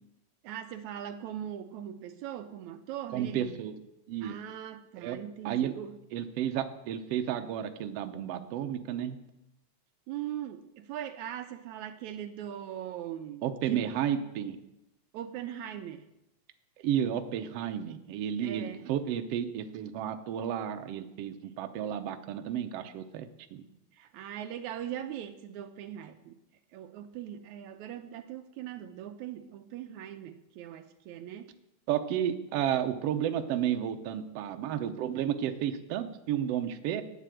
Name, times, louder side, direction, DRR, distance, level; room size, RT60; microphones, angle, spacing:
voice 1, 0.4-3.6 4.2-6.0 10.1-13.9 15.1-16.1 18.4-18.8 23.9-26.4 26.7-31.6, right 10 dB, 80° right, 2.0 m, -40 dB
voice 2, 3.1-3.8 4.1-4.4 5.0-5.2 5.5-5.7 6.1-9.2 13.4-14.6 16.8-23.6 31.9-37.0, right 10 dB, 65° right, 1.7 m, -32 dB
11.5 x 9.3 x 7.8 m
omnidirectional pair, 3.4 m